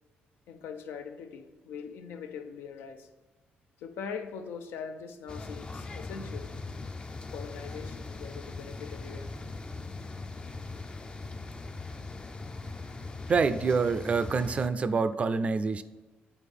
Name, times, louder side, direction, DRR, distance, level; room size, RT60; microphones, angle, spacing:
voice 1, 0.5-3.1 3.8-6.5 7.3-9.8, left 6 dB, 85° left, 7 dB, 0.6 m, -42 dB
sound 1, 5.3-14.7, left 3 dB, 25° left, 0.4 m, -40 dB
voice 2, 13.3-15.8, right 4 dB, 35° right, 12 dB, 0.4 m, -26 dB
8.4 x 4.0 x 3.6 m, 1.2 s
cardioid pair, 90°, 4 cm